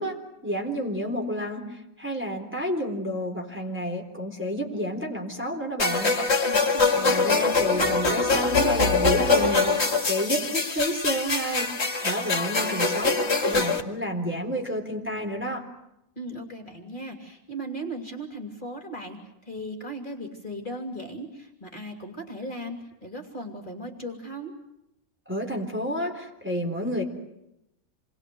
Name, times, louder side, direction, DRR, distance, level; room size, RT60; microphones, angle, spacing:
voice 1, 0.0-6.2 7.0-15.7 25.3-27.0, equal, 10° right, 0 dB, 4.0 m, -30 dB
sound 1, 5.8-13.8, left 4 dB, 50° left, 2.5 m, -23 dB
voice 2, 6.4-7.3 16.2-24.5, right 1 dB, 35° left, 2 dB, 3.3 m, -37 dB
28.0 x 22.0 x 7.9 m, 0.85 s
omnidirectional pair, 1.4 m